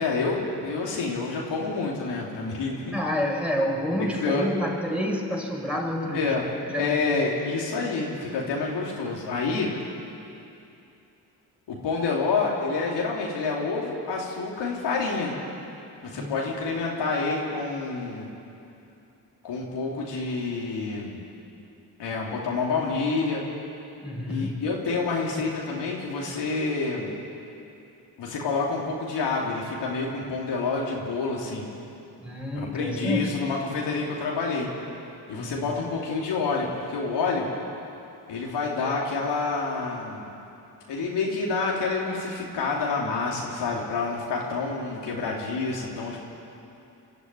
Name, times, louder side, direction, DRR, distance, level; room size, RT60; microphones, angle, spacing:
voice 1, 0.0-3.0 4.2-4.5 6.1-6.4 6.7-9.7 11.7-15.3 16.0-18.3 19.4-21.2 22.0-23.4 24.3-27.1 28.2-31.7 32.5-34.7 35.3-37.5 38.3-40.3 40.9-46.2, left 4 dB, 80° left, -3 dB, 3.2 m, -28 dB
voice 2, 2.9-6.4 6.7-7.0 16.1-16.4 24.0-24.6 32.2-33.4 35.4-35.6, equal, 5° right, -1 dB, 5.7 m, -29 dB
24.0 x 12.5 x 9.7 m, 2.7 s
supercardioid pair, 50°, 41 cm